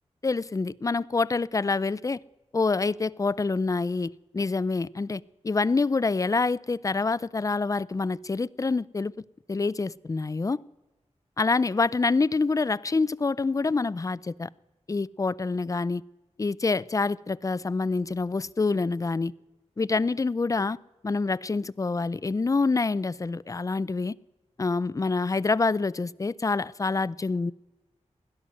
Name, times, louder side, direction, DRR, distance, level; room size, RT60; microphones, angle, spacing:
voice 1, 0.2-2.2 2.5-9.1 9.5-10.6 11.4-14.5 14.9-16.0 16.4-19.3 19.8-20.8 21.0-24.1 24.6-27.5, left 3 dB, 30° left, 0.4 m, -26 dB
17.0 x 11.0 x 7.7 m
wide cardioid pair, 90°, 12 cm